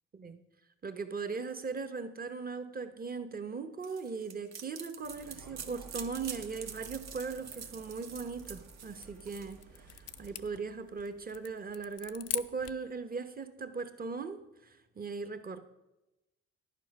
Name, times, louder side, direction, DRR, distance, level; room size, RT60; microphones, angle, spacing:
voice 1, 0.8-9.6 9.9-15.6, right 4 dB, 30° right, 8 dB, 1.0 m, -39 dB
sound 1, 3.8-10.3, right 7 dB, 60° right, 1.0 m, -46 dB
sound 2, 5.0-10.6, right 4 dB, 75° right, 1.4 m, -54 dB
sound 3, 8.3-12.9, left 11 dB, 55° left, 0.5 m, -43 dB
11.0 x 7.3 x 5.4 m, 0.96 s
cardioid pair, 90°, 30 cm